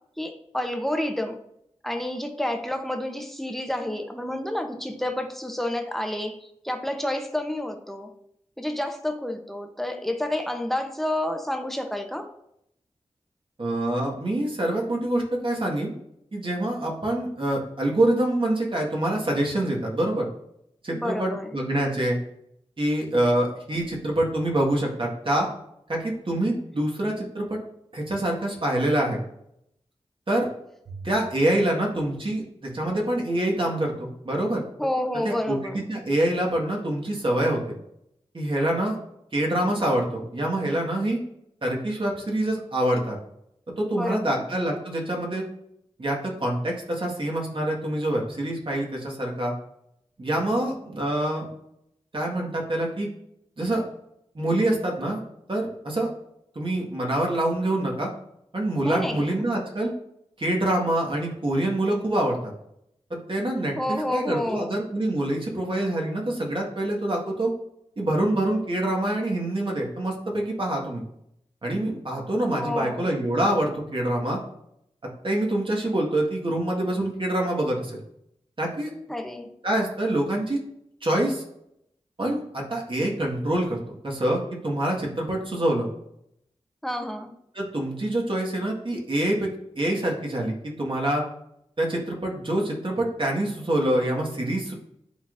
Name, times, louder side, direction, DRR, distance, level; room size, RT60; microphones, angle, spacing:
voice 1, 0.2-1.4 1.8-8.1 8.6-12.3 20.9-21.5 34.8-35.9 43.9-44.4 58.8-59.5 63.8-64.8 72.5-73.1 79.1-79.5 86.8-87.3, left 1 dB, ahead, 4 dB, 0.9 m, -29 dB
voice 2, 13.6-15.9 16.3-20.3 20.8-22.2 22.8-25.5 25.9-27.6 27.9-29.2 30.3-30.5 30.9-34.6 35.2-37.6 38.3-39.0 39.3-41.2 41.6-43.2 43.8-45.4 46.0-49.5 50.2-51.5 52.1-53.1 53.6-53.8 54.4-55.2 55.5-56.1 56.6-58.1 58.5-59.9 60.4-62.5 63.1-67.5 68.0-71.0 71.6-74.4 75.2-77.9 78.6-78.9 79.6-80.6 81.0-81.4 82.2-85.9 87.6-91.2 91.8-94.7, right 1 dB, 50° right, -2 dB, 1.7 m, -26 dB
11.0 x 3.9 x 2.6 m, 0.77 s
wide cardioid pair, 55°, 11 cm